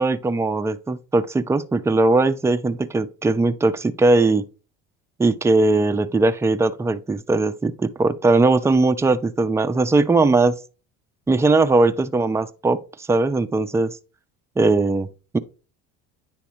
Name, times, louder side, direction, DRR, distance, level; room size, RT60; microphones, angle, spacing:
voice 1, 0.0-4.4 5.2-10.6 11.3-12.8 13.1-14.0 14.6-15.1 15.3-15.4, right 3 dB, 10° right, 0.4 m, -19 dB
9.6 x 3.5 x 3.0 m
supercardioid pair, 80°, 38 cm